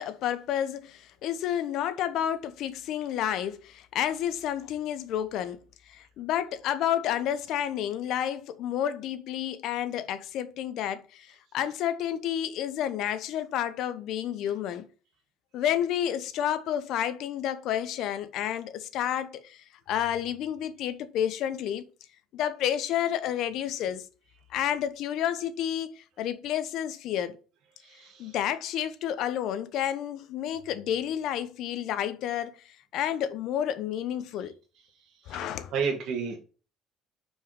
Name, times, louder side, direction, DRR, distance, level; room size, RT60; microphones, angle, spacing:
voice 1, 0.0-5.6 5.9-14.9 15.5-21.9 22.3-24.0 24.5-27.4 28.2-34.5 35.3-35.7, left 10 dB, 70° left, 0.8 m, -30 dB
voice 2, 27.8-28.3 35.2-36.4, right 6 dB, 65° right, 1.6 m, -32 dB
5.7 x 4.7 x 4.7 m
supercardioid pair, 95°, 0 cm